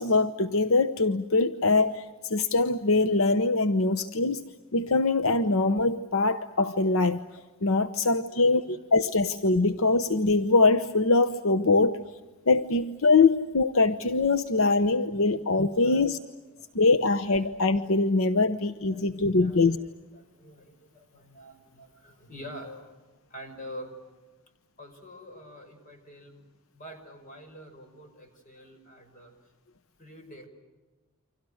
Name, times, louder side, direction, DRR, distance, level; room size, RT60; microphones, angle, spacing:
voice 1, 0.0-4.4 4.7-7.2 7.6-12.0 12.5-16.2 16.7-19.8, left 3 dB, 75° left, 0.9 m, -23 dB
voice 2, 3.9-4.3 8.0-8.8 15.3-15.4 15.7-16.1 16.5-16.7 18.9-22.9 23.3-24.1 24.8-26.5 26.7-29.3 30.0-30.5, equal, 35° left, 5.8 m, -47 dB
29.5 x 25.5 x 6.4 m
head